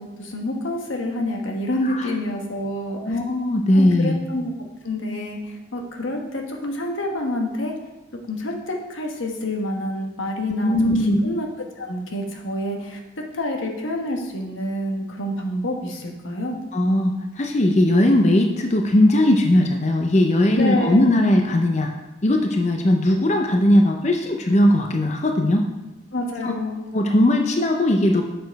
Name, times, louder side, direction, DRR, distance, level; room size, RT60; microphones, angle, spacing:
voice 1, 0.0-3.2 3.7-4.5 4.8-7.7 8.3-13.0 13.3-16.6 20.5-21.1 26.1-26.9, left 1 dB, 85° left, 1 dB, 1.3 m, -28 dB
voice 2, 3.0-4.2 10.6-11.2 16.7-21.9 22.2-25.7 26.4-26.5 26.9-28.2, left 1 dB, 35° left, 3 dB, 0.5 m, -18 dB
6.7 x 6.7 x 4.7 m, 1.0 s
head